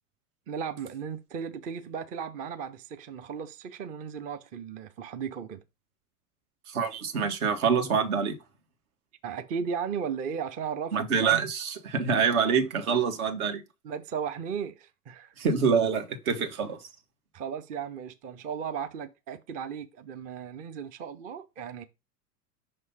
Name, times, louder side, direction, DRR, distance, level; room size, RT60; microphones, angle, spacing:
voice 1, 0.5-5.6 9.2-11.0 11.3-11.4 12.9-13.0 13.8-15.3 17.3-21.8, right 7 dB, 20° right, 0.4 m, -36 dB
voice 2, 6.7-8.4 10.9-13.6 15.4-16.8, right 6 dB, 65° right, 1.4 m, -26 dB
5.8 x 3.1 x 5.5 m
figure-of-eight pair, 90°, 46 cm